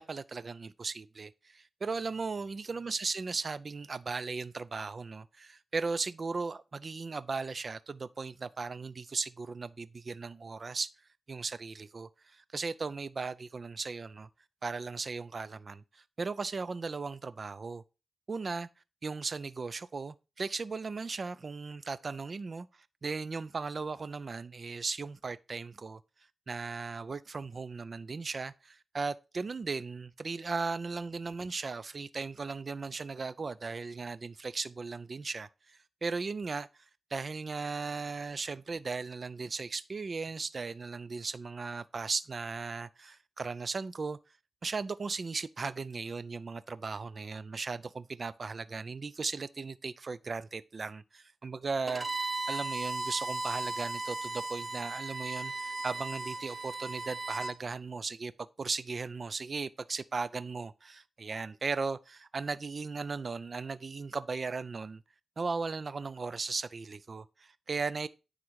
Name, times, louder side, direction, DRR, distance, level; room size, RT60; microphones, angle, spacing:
voice 1, 0.0-10.9 11.3-14.3 14.6-17.8 18.3-18.7 19.0-22.7 23.0-26.0 26.5-36.7 37.1-44.2 44.6-58.3 58.6-65.0 65.4-68.1, right 4 dB, 45° right, 0.4 m, -37 dB
Bowed string instrument, 51.9-57.6, right 2 dB, 30° right, 1.0 m, -36 dB
9.5 x 3.8 x 4.6 m
wide cardioid pair, 110°, 0 cm